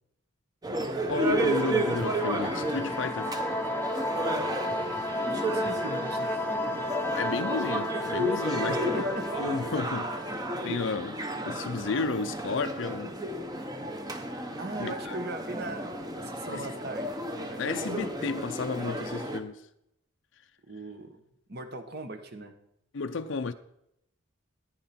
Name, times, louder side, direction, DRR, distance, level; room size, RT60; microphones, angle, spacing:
sound 1, 0.6-19.4, right 1 dB, 20° right, 0.8 m, -32 dB
voice 1, 1.1-3.3 7.2-11.1 11.5-13.1 14.8-15.2 16.5-16.7 17.6-19.7 22.9-23.5, left 4 dB, 60° left, 0.5 m, -33 dB
sound 2, 1.1-11.5, left 1 dB, 10° left, 0.5 m, -34 dB
voice 2, 5.3-6.8 8.7-9.2 10.5-10.8 14.6-17.8 20.7-21.2 21.5-22.6, right 2 dB, 50° right, 1.2 m, -40 dB
14.0 x 9.1 x 4.3 m
head